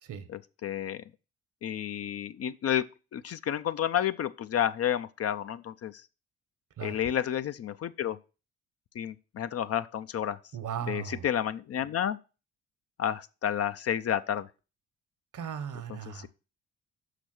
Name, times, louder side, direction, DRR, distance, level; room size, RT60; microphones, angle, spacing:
voice 1, 0.3-1.0 1.6-2.9 3.1-5.9 6.8-8.2 8.9-10.4 10.9-12.2 13.0-14.5 16.1-16.3, left 10 dB, 45° left, 0.5 m, -30 dB
voice 2, 10.5-11.3 15.3-16.3, right 8 dB, 60° right, 1.2 m, -37 dB
6.1 x 5.0 x 6.0 m
hypercardioid pair, 45°, 36 cm